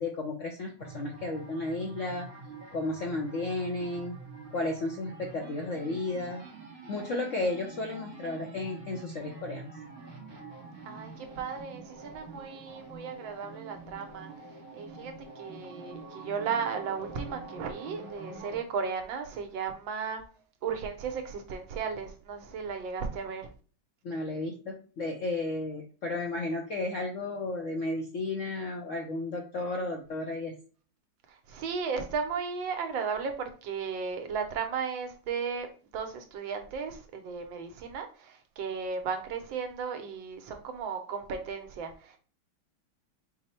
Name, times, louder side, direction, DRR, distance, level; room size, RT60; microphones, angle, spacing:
voice 1, 0.0-2.3 2.7-4.2 4.5-6.4 6.9-9.7 24.0-30.5, left 2 dB, 70° left, 0.7 m, -33 dB
sound 1, 0.8-18.6, right 3 dB, 35° right, 0.9 m, -46 dB
voice 2, 10.8-20.2 20.6-23.5 31.3-35.7 35.9-42.2, right 6 dB, 80° right, 1.5 m, -35 dB
4.9 x 2.0 x 4.2 m
omnidirectional pair, 2.1 m